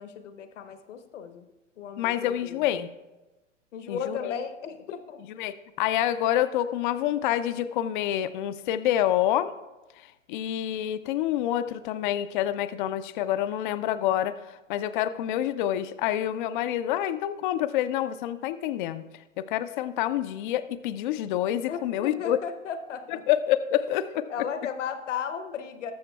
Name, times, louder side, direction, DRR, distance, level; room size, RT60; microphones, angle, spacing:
voice 1, 0.0-1.4 1.8-2.7 3.7-5.2 21.7-23.2 24.3-25.9, left 7 dB, 70° left, 9 dB, 1.1 m, -35 dB
voice 2, 2.0-2.9 3.9-4.4 5.4-9.5 10.0-19.0 19.4-22.4 23.3-24.2, left 12 dB, 40° left, 12 dB, 0.5 m, -27 dB
18.5 x 7.1 x 2.3 m, 1.1 s
hypercardioid pair, 120°, 38 cm